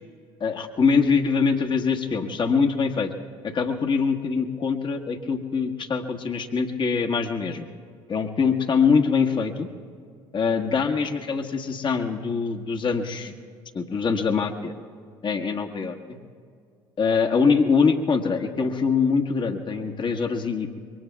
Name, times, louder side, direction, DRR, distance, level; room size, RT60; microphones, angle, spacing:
voice 1, 0.4-3.1 3.4-7.6 8.1-9.7 10.3-13.3 13.7-14.7 15.2-16.2 17.0-20.7, left 5 dB, 40° left, 4 dB, 1.5 m, -23 dB
27.0 x 23.0 x 2.3 m, 2.2 s
hypercardioid pair, 60°, 12 cm